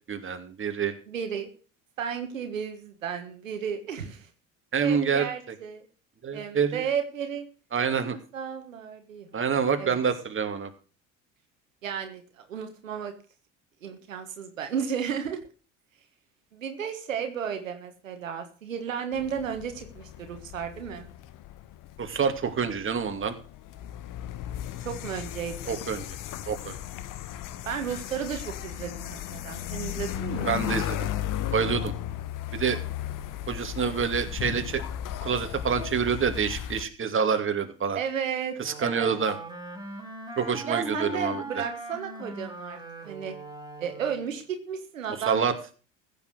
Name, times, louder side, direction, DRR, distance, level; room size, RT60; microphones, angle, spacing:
voice 1, 0.1-0.9 4.7-5.3 6.2-6.8 7.7-8.2 9.3-10.7 22.0-23.3 25.7-26.0 26.5-26.8 30.4-31.1 31.5-31.9 32.5-32.8 33.5-34.8 35.2-38.0 38.6-39.3 40.4-41.4 45.3-45.5, right 6 dB, 30° right, 6 dB, 2.5 m, -27 dB
voice 2, 1.1-1.5 2.0-4.3 4.8-5.9 6.3-7.4 8.1-9.3 9.8-10.0 11.8-13.1 13.8-15.4 16.5-21.1 24.8-25.8 27.6-30.5 37.9-39.1 40.7-42.8 43.0-43.3 43.8-45.5, right 7 dB, 90° right, 6 dB, 1.6 m, -33 dB
sound 1, 19.1-36.8, left 11 dB, 55° left, 1.3 m, -35 dB
Wind instrument woodwind instrument, 38.6-44.3, right 1 dB, 10° right, 4.0 m, -39 dB
15.5 x 7.7 x 6.4 m, 0.38 s
hypercardioid pair, 65°, 38 cm